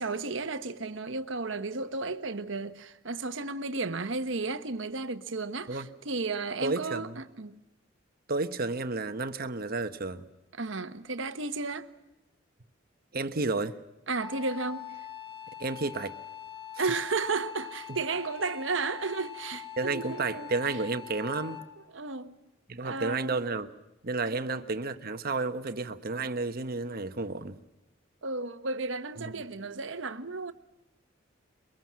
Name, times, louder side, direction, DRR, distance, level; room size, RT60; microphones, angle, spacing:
voice 1, 0.0-7.5 10.6-11.9 14.1-15.0 16.8-20.8 21.9-22.3 22.8-23.4 24.3-24.6 28.2-30.5, right 3 dB, 70° right, 1.2 m, -33 dB
voice 2, 6.6-7.2 8.3-10.3 13.1-13.8 15.6-16.2 19.8-21.6 22.7-23.7 24.0-27.6 29.2-29.3, right 3 dB, 50° right, 1.2 m, -31 dB
Wind instrument woodwind instrument, 14.2-21.8, left 11 dB, 25° left, 1.5 m, -43 dB
23.5 x 22.5 x 7.5 m
head